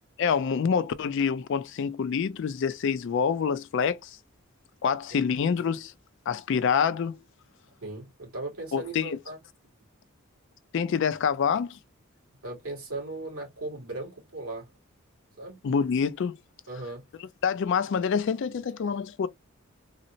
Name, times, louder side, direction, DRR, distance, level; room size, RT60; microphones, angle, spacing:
voice 1, 0.2-4.2 4.8-5.9 6.3-7.2 8.7-9.2 10.7-11.8 15.6-16.4 17.4-19.3, left 6 dB, 60° left, 0.3 m, -26 dB
voice 2, 7.8-9.4 12.4-14.7 15.4-15.6 16.7-17.0, right 2 dB, 85° right, 2.2 m, -37 dB
3.9 x 2.0 x 2.6 m
head